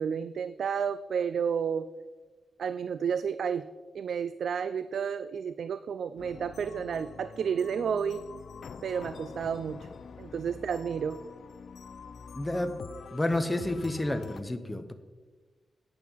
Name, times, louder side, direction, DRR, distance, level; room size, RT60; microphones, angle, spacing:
voice 1, 0.0-1.9 2.6-3.7 3.9-8.2 8.8-9.9 10.2-11.2, right 7 dB, 70° right, 13 dB, 0.3 m, -31 dB
sound 1, 6.2-14.4, left 6 dB, 65° left, 0.5 m, -46 dB
voice 2, 12.3-12.8 13.1-14.9, left 1 dB, 15° left, 8 dB, 0.8 m, -30 dB
11.5 x 8.8 x 4.6 m, 1.3 s
wide cardioid pair, 125°, 0 cm